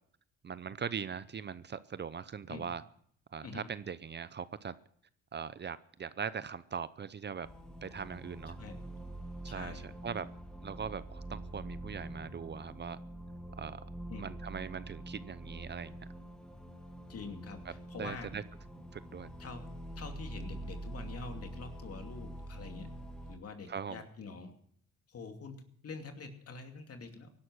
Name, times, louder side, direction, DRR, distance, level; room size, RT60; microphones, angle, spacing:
voice 1, 0.4-2.8 3.3-4.7 5.3-7.5 7.8-8.6 9.4-10.3 10.6-13.0 13.6-13.8 14.2-16.0 18.0-18.4 18.9-19.3 23.7-24.0, right 6 dB, 35° right, 15 dB, 0.7 m, -40 dB
sound 1, 7.4-23.4, right 1 dB, 5° left, 1.9 m, -45 dB
voice 2, 8.5-8.8 9.5-9.9 14.1-14.3 17.1-18.3 19.4-19.6 20.0-22.9 23.3-24.5 25.1-27.3, left 4 dB, 50° left, 5 dB, 2.7 m, -46 dB
17.5 x 11.5 x 6.3 m, 0.63 s
cardioid pair, 90°, 30 cm